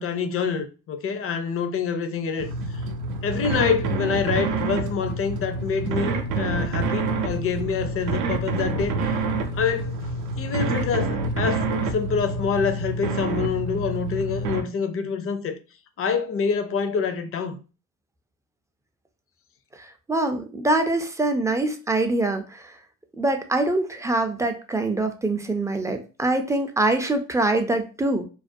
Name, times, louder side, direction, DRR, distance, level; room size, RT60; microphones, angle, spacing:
voice 1, 0.0-2.5 3.2-9.2 9.5-9.9 10.4-15.6 16.0-17.6, left 6 dB, 45° left, 0.5 m, -26 dB
Amir - Sound Design Project i (again), 2.4-14.6, right 3 dB, 80° right, 0.5 m, -27 dB
voice 2, 19.8-22.7 23.2-28.3, right 2 dB, 10° right, 0.3 m, -24 dB
2.4 x 2.1 x 2.5 m
cardioid pair, 90°, 30 cm